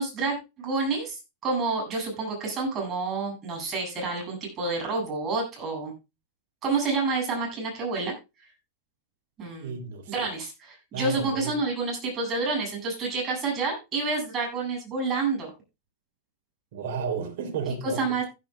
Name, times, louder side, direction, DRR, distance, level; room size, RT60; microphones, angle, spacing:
voice 1, 0.0-5.9 6.6-8.1 9.4-9.7 10.1-15.5 18.0-18.2, right 3 dB, 30° right, 7.9 m, -29 dB
voice 2, 9.6-10.3 10.9-11.6 16.7-18.0, right 6 dB, 65° right, 3.7 m, -32 dB
16.0 x 10.5 x 2.4 m
supercardioid pair, 130°, 0 cm